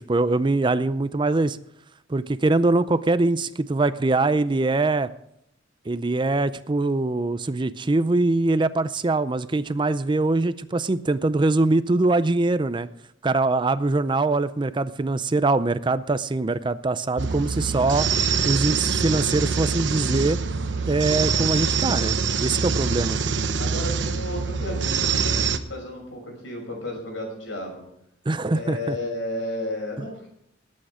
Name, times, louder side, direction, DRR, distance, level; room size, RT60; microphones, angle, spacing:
voice 1, 0.0-1.6 2.1-5.1 5.9-12.9 13.2-18.1 18.5-20.4 20.9-23.2 28.3-29.0, right 2 dB, 25° right, 14 dB, 0.5 m, -23 dB
sound 1, 17.2-25.6, right 5 dB, 70° right, 1.0 m, -24 dB
voice 2, 23.6-27.9 28.5-30.3, left 1 dB, 85° left, 1 dB, 6.0 m, -33 dB
19.5 x 8.6 x 4.9 m, 0.75 s
head